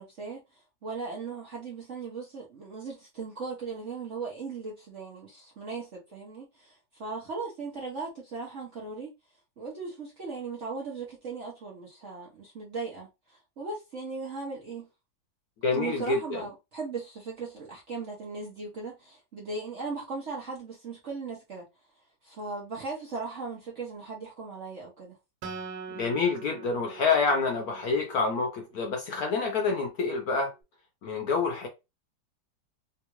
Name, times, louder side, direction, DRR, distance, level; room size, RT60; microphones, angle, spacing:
voice 1, 0.0-9.1 9.6-14.9 15.7-21.7 22.2-25.2, right 4 dB, 55° right, 0.9 m, -38 dB
voice 2, 15.6-16.4 25.9-30.5 31.0-31.7, left 4 dB, 60° left, 1.0 m, -27 dB
Acoustic guitar, 25.4-28.9, right 5 dB, 85° right, 1.6 m, -43 dB
3.5 x 2.4 x 3.0 m
omnidirectional pair, 2.1 m